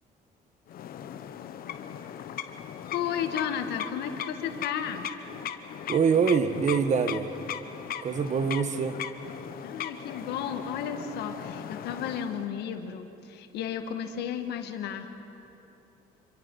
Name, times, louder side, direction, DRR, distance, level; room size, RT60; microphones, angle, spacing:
sound 1, 0.7-12.5, left 9 dB, 60° left, 1.2 m, -38 dB
voice 1, 2.9-5.1 9.6-15.1, left 8 dB, 80° left, 7 dB, 1.7 m, -33 dB
voice 2, 5.9-7.3 8.0-9.0, right 6 dB, 45° right, 10 dB, 1.3 m, -24 dB
26.5 x 23.0 x 5.6 m, 2.9 s
cardioid pair, 110°, 17 cm